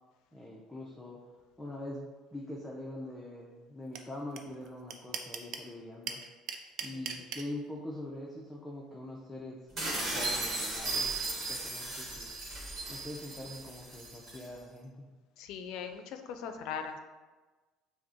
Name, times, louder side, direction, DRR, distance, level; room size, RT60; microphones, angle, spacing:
voice 1, 0.3-1.2 1.6-6.2 6.8-9.6 9.9-11.1 11.5-12.3 12.9-15.1, left 1 dB, 10° left, -4 dB, 0.5 m, -43 dB
sound 1, 3.9-4.0 4.4-4.5 4.6-5.7 6.1-7.4, right 7 dB, 60° right, 0.4 m, -37 dB
voice 2, 6.9-7.2 15.4-17.0, left 7 dB, 70° left, 7 dB, 0.4 m, -40 dB
sound 2, 9.8-14.5, right 2 dB, 40° right, 1.3 m, -36 dB
5.7 x 2.1 x 2.6 m, 1.3 s
cardioid pair, 115°, 0 cm